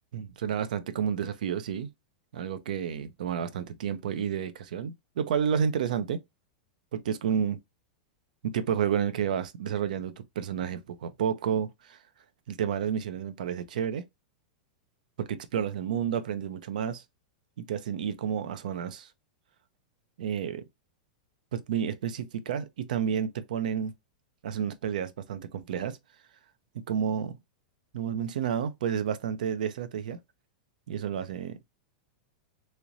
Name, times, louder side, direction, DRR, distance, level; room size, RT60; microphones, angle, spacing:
voice 1, 0.1-1.9 2.3-6.2 6.9-7.6 8.4-12.0 12.5-14.0 15.2-17.0 17.6-19.1 20.2-20.6 21.5-23.9 24.4-26.0 26.9-27.4 27.9-30.2 30.9-31.6, right 8 dB, 80° right, 0.5 m, -30 dB
3.2 x 2.9 x 2.5 m
supercardioid pair, 135°, 4 cm